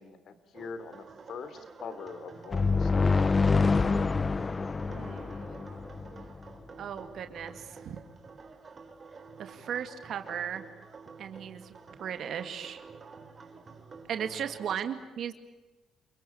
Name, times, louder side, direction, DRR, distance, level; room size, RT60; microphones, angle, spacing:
voice 1, 0.0-3.7 13.4-13.5, left 5 dB, 65° left, 12 dB, 3.4 m, -44 dB
sound 1, 0.5-14.8, right 4 dB, 40° right, 3.7 m, -50 dB
sound 2, 2.5-6.3, left 4 dB, 30° left, 0.8 m, -26 dB
voice 2, 4.9-5.7 6.8-8.0 9.4-10.6 11.2-11.7 12.0-12.8 14.1-15.3, right 8 dB, 65° right, 8 dB, 2.1 m, -36 dB
28.5 x 23.0 x 8.7 m, 1.1 s
cardioid pair, 90°, 0 cm